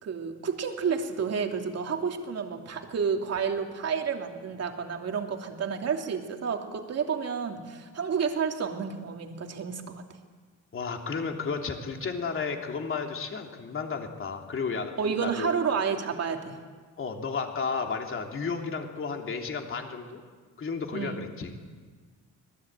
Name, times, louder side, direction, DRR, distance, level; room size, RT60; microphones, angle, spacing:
voice 1, 0.0-10.0 15.0-16.6 20.9-21.2, right 6 dB, 55° right, 3 dB, 2.9 m, -30 dB
voice 2, 10.7-14.9 15.2-15.5 17.0-20.2 20.6-21.5, left 5 dB, 40° left, 2 dB, 3.3 m, -33 dB
26.0 x 19.5 x 9.0 m, 1.5 s
cardioid pair, 125°, 31 cm